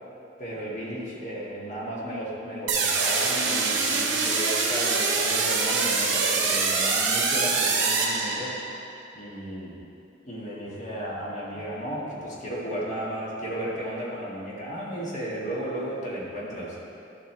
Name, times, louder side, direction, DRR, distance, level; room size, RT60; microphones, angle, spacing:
voice 1, 0.4-8.5 9.1-9.8 10.2-16.8, equal, 40° left, -6 dB, 1.8 m, -34 dB
sound 1, 2.7-8.8, right 4 dB, 60° right, 1.1 m, -24 dB
11.0 x 7.3 x 3.4 m, 2.8 s
head